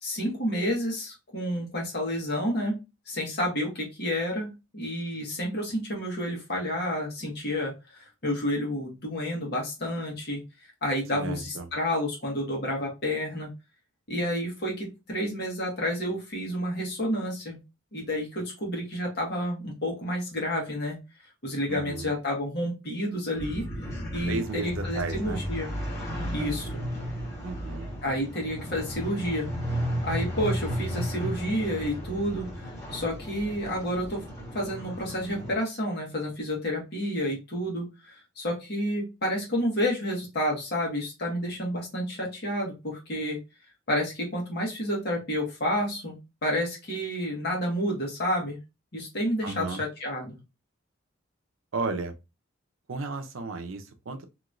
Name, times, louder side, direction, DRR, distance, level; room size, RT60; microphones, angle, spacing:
voice 1, 0.0-2.8 3.1-10.4 10.8-13.5 14.1-17.6 17.9-21.0 21.4-23.7 24.1-25.8 26.3-26.8 28.0-29.8 30.0-34.2 34.5-43.4 43.9-46.2 46.4-48.6 48.9-50.4, equal, 55° left, 1.4 m, -30 dB
voice 2, 11.1-11.7 21.7-22.1 24.3-25.4 26.1-26.5 27.4-27.9 49.4-49.8 51.7-52.1 52.9-54.3, right 3 dB, 85° right, 0.6 m, -34 dB
sound 1, 23.3-35.5, equal, 15° left, 1.5 m, -34 dB
3.0 x 2.9 x 2.5 m
head